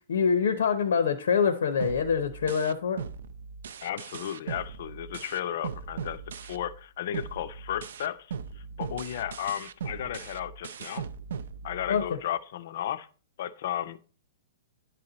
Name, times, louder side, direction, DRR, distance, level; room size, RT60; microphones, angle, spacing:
voice 1, 0.1-3.0 11.9-12.2, left 6 dB, 90° left, 10 dB, 0.7 m, -25 dB
sound 1, 1.8-6.8 7.1-12.2, right 6 dB, 60° right, 0.4 m, -39 dB
voice 2, 3.8-11.1 11.6-13.1 13.4-14.0, left 11 dB, 45° left, 14 dB, 0.4 m, -34 dB
10.5 x 4.2 x 3.9 m, 0.39 s
hypercardioid pair, 180°, 0 cm